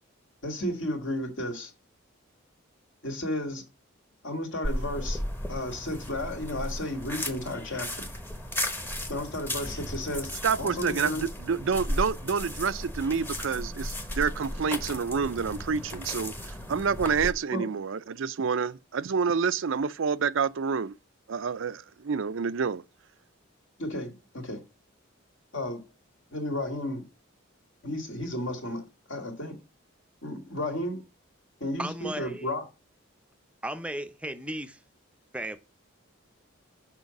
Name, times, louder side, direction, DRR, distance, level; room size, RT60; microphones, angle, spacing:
voice 1, 0.4-1.7 3.0-3.6 4.2-5.2 5.5-8.1 9.1-11.2 17.5-17.6 23.8-24.6 25.5-25.8 26.3-27.0 27.8-28.8 29.1-29.5 30.2-31.0 31.6-32.6, left 1 dB, 60° left, 2.3 m, -33 dB
sound 1, 4.6-17.3, left 1 dB, 10° left, 1.0 m, -35 dB
voice 2, 10.4-20.9 21.3-22.8, right 5 dB, 65° right, 0.5 m, -28 dB
voice 3, 31.8-32.5 33.6-34.8 35.3-35.6, right 1 dB, 5° right, 0.6 m, -35 dB
6.6 x 5.6 x 7.1 m
head